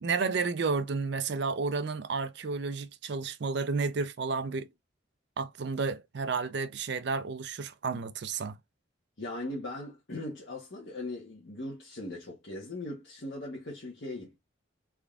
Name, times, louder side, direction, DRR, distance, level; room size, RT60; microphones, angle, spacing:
voice 1, 0.0-4.7 5.4-8.6, right 4 dB, 55° right, 0.4 m, -31 dB
voice 2, 9.2-14.4, left 1 dB, 60° left, 1.1 m, -39 dB
3.5 x 3.4 x 2.4 m
head